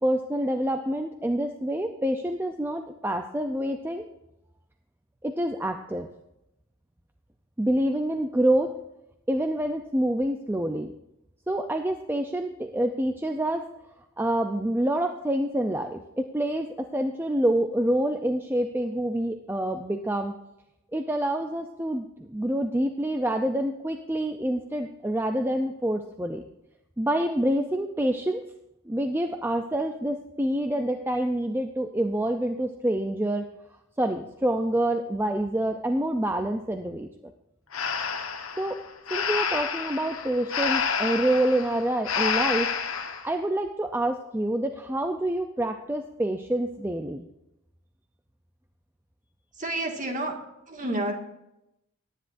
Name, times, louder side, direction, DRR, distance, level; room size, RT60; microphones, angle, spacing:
voice 1, 0.0-4.0 5.2-6.1 7.6-8.7 9.3-10.9 11.5-13.6 14.2-20.3 20.9-26.4 27.0-28.4 28.9-33.5 34.0-37.1 38.6-38.8 39.1-42.7 43.2-47.3, right 1 dB, 10° right, 5 dB, 0.5 m, -27 dB
Breathing, 37.7-43.3, left 6 dB, 80° left, 1.3 m, -29 dB
voice 2, 49.5-50.3 50.7-51.1, right 1 dB, 35° right, 2 dB, 2.0 m, -29 dB
18.0 x 10.0 x 2.6 m, 0.87 s
head